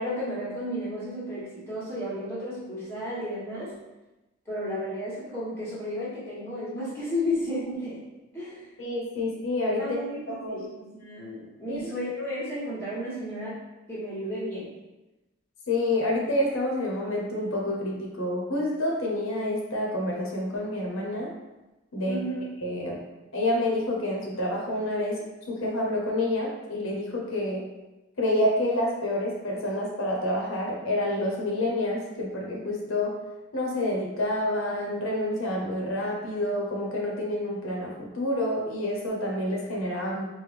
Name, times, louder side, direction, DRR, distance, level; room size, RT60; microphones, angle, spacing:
voice 1, 0.0-3.8 4.4-8.0 8.3-8.7 9.8-13.6 13.9-14.7 22.0-22.4, left 1 dB, 10° left, -9 dB, 1.3 m, -33 dB
voice 2, 8.8-9.8 10.3-10.6 11.7-11.8 15.7-21.3 21.9-22.2 22.6-23.0 23.3-25.2 25.5-27.6 28.2-33.1 33.5-40.2, left 1 dB, 80° left, -2 dB, 0.8 m, -28 dB
5.0 x 2.2 x 3.3 m, 1.0 s
head